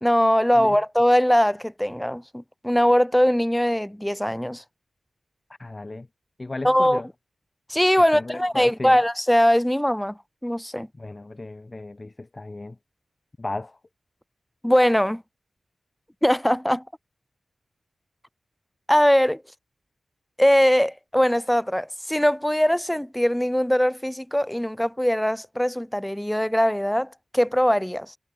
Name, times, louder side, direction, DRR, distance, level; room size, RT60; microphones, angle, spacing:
voice 1, 0.0-4.6 6.6-7.0 7.7-10.9 14.6-15.2 16.2-16.8 18.9-19.4 20.4-28.2, equal, 5° left, 2.9 m, -21 dB
voice 2, 5.6-6.1 6.4-7.1 8.1-9.0 11.0-12.8 13.4-13.8, left 2 dB, 25° left, 2.3 m, -35 dB
wide cardioid pair, 105°, 0 cm